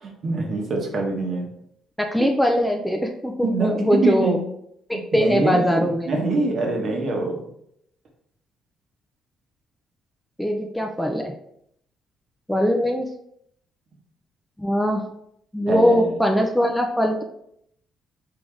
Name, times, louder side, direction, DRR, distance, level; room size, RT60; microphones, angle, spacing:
voice 1, 0.0-1.5 3.4-4.4 4.9-7.4 15.7-16.2, right 3 dB, 45° right, 1 dB, 1.1 m, -25 dB
voice 2, 2.0-4.4 5.1-6.1 10.4-11.3 12.5-13.1 14.6-15.0 15.5-17.2, equal, 5° left, 2 dB, 0.5 m, -21 dB
3.8 x 3.7 x 3.3 m, 0.72 s
cardioid pair, 125°, 0 cm